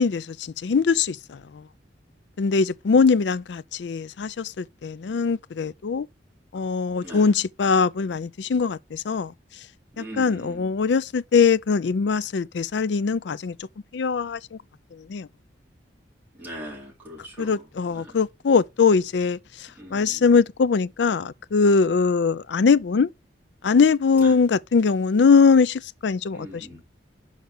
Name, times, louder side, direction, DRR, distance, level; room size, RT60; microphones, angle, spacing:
voice 1, 0.0-1.6 2.4-6.1 6.5-9.3 10.0-13.6 13.9-14.6 14.9-15.3 17.4-23.1 23.6-26.7, left 5 dB, 70° left, 0.4 m, -21 dB
voice 2, 9.9-10.7 16.3-17.7 17.9-18.2 19.8-20.2 24.2-24.4 26.3-26.8, equal, 10° right, 4.0 m, -40 dB
6.1 x 5.2 x 6.5 m
head